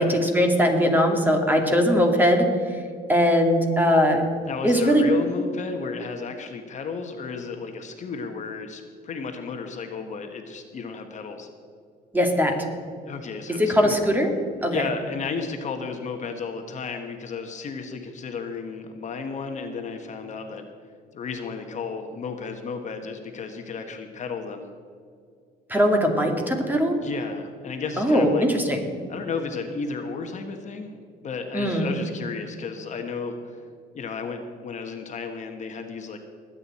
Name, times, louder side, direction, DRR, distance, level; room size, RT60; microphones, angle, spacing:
voice 1, 0.0-2.8 3.1-4.2 4.6-5.0 12.1-12.5 13.6-14.3 14.6-14.8 25.7-27.0 28.0-28.9 31.5-31.9, equal, 10° right, 3 dB, 2.2 m, -20 dB
voice 2, 4.5-11.5 13.0-14.0 14.7-20.7 21.1-24.7 27.0-28.5 29.1-30.9 31.2-33.6 33.9-36.2, left 5 dB, 45° left, 5 dB, 1.3 m, -33 dB
21.0 x 8.9 x 4.3 m, 2.2 s
cardioid pair, 110°, 17 cm